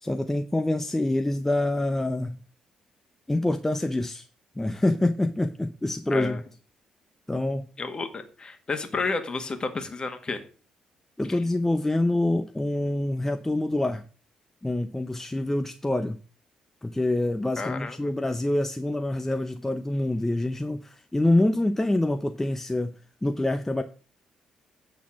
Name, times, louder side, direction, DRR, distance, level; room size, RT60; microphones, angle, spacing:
voice 1, 0.0-2.4 3.3-4.3 4.6-6.4 7.3-7.7 11.2-14.0 14.6-16.2 16.8-23.8, left 1 dB, 15° left, 0.6 m, -26 dB
voice 2, 7.8-10.4 17.6-18.1, left 3 dB, 35° left, 1.6 m, -31 dB
8.5 x 4.2 x 7.1 m
supercardioid pair, 55°, 2 cm